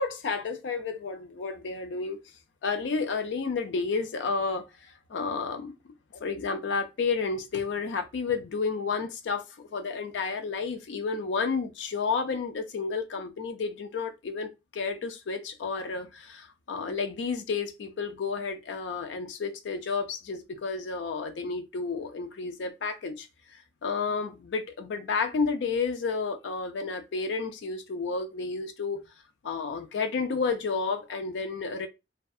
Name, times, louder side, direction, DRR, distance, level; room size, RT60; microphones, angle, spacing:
voice 1, 0.0-2.2 2.6-4.6 5.1-5.7 6.2-23.3 23.8-29.0 29.4-31.9, left 4 dB, 90° left, 0.4 m, -31 dB
2.6 x 2.2 x 2.3 m
head